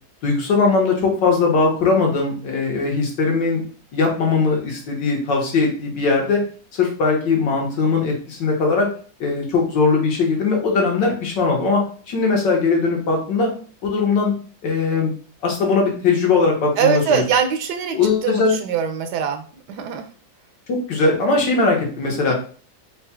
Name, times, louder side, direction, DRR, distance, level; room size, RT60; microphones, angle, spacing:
voice 1, 0.2-3.6 3.9-6.4 6.7-8.9 9.2-13.5 13.8-14.3 14.6-15.1 15.4-17.0 17.9-18.6 20.7-22.4, left 4 dB, 80° left, 0 dB, 1.9 m, -19 dB
voice 2, 16.8-20.1 22.3-22.4, right 7 dB, 75° right, 6 dB, 1.1 m, -22 dB
4.6 x 2.4 x 4.3 m, 0.42 s
omnidirectional pair, 1.9 m